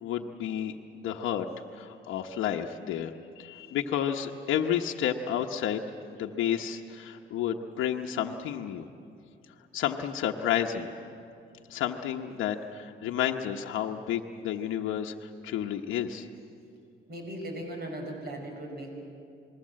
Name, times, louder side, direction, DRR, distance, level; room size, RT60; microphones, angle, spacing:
voice 1, 0.0-1.5 1.7-5.8 6.1-8.8 9.7-10.9 11.7-16.3, left 9 dB, 90° left, 2 dB, 1.0 m, -31 dB
voice 2, 17.1-19.0, right 1 dB, 55° right, 2 dB, 5.7 m, -38 dB
27.0 x 20.5 x 7.6 m, 2.5 s
cardioid pair, 90°, 20 cm